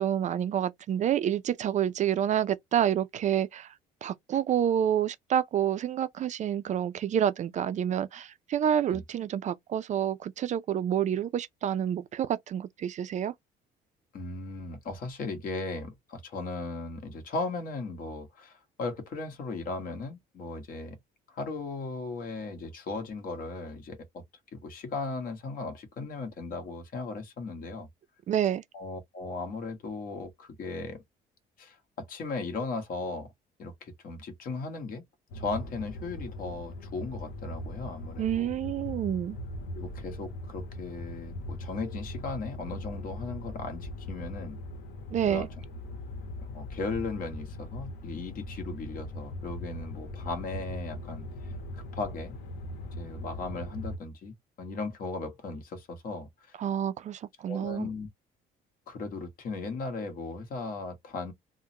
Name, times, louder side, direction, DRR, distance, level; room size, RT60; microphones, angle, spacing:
voice 1, 0.0-3.7 4.0-13.3 28.3-28.6 38.2-39.4 45.1-45.5 56.6-57.9, right 10 dB, 45° right, 0.4 m, -28 dB
voice 2, 14.1-21.0 21.3-24.2 24.5-27.9 28.7-31.0 31.6-33.3 33.6-35.0 35.3-38.5 39.7-44.6 45.2-45.5 46.5-52.3 53.0-56.6 57.5-58.1 58.9-61.3, left 3 dB, 55° left, 1.3 m, -37 dB
sound 1, 35.3-54.0, left 1 dB, 90° left, 1.0 m, -40 dB
3.6 x 2.1 x 2.7 m
cardioid pair, 110°, 17 cm